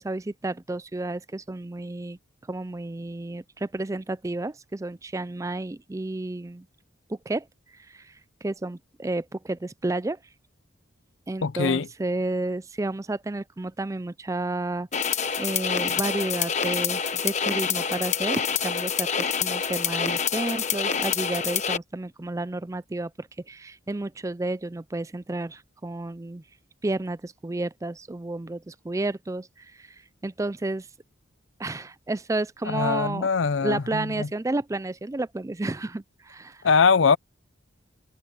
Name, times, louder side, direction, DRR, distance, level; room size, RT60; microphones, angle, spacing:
voice 1, 0.0-2.2 2.5-6.7 7.1-7.5 7.9-8.1 8.4-10.2 11.3-26.4 26.8-29.9 30.2-30.9 31.6-33.3 33.6-36.6, right 2 dB, 15° right, 0.4 m, -31 dB
voice 2, 11.4-11.9 32.7-34.3 36.6-37.2, left 5 dB, 70° left, 0.6 m, -22 dB
sound 1, 14.9-21.8, left 7 dB, 35° left, 1.1 m, -27 dB
head